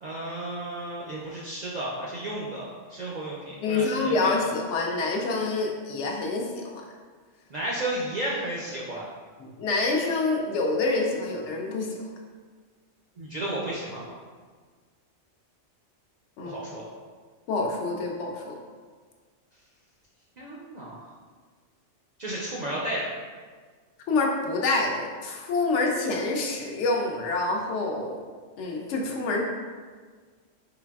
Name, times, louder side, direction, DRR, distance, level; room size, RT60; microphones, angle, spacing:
voice 1, 0.0-4.3 7.5-9.1 13.2-14.0 16.4-16.8 20.4-21.1 22.2-23.1, right 1 dB, 65° right, -5 dB, 0.4 m, -33 dB
voice 2, 3.6-6.8 9.4-12.0 16.4-16.6 17.5-18.6 24.1-28.2 28.6-29.4, left 3 dB, 75° left, 0 dB, 0.9 m, -27 dB
3.8 x 3.3 x 2.3 m, 1.5 s
omnidirectional pair, 1.3 m